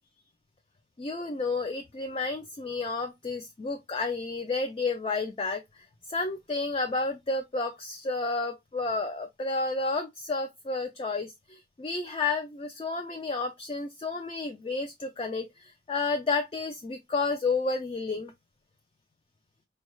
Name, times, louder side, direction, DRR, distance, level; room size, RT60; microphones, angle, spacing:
voice 1, 1.0-18.3, left 3 dB, 30° left, 0.3 m, -31 dB
4.4 x 2.3 x 3.0 m
head